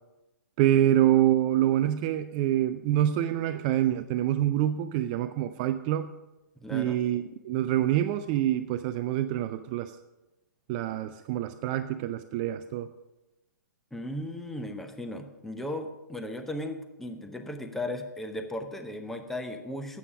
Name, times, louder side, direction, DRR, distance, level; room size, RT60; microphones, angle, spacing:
voice 1, 0.6-6.1 6.7-10.0 10.7-12.9, right 12 dB, 25° right, 10 dB, 0.3 m, -26 dB
voice 2, 6.6-7.0 13.9-20.0, left 1 dB, 5° left, 6 dB, 0.8 m, -36 dB
12.0 x 8.4 x 4.9 m, 1.0 s
figure-of-eight pair, 120°, 10 cm